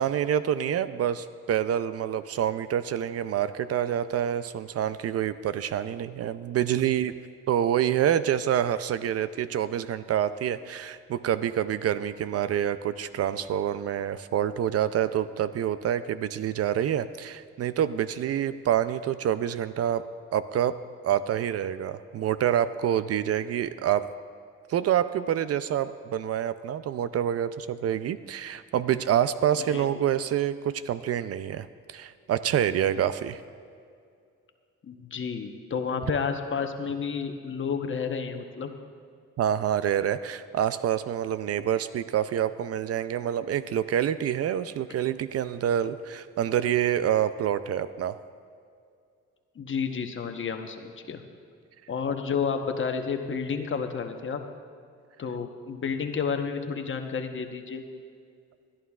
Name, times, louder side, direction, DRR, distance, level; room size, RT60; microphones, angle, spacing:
voice 1, 0.0-7.1 7.5-20.0 20.3-20.7 21.0-24.0 24.7-33.4 39.4-48.2, right 10 dB, 55° right, 13 dB, 0.4 m, -27 dB
voice 2, 34.8-38.7 49.6-51.2 51.9-54.4 55.2-57.8, left 6 dB, 40° left, 5 dB, 1.0 m, -31 dB
20.0 x 11.5 x 2.4 m, 2.3 s
cardioid pair, 90°, 30 cm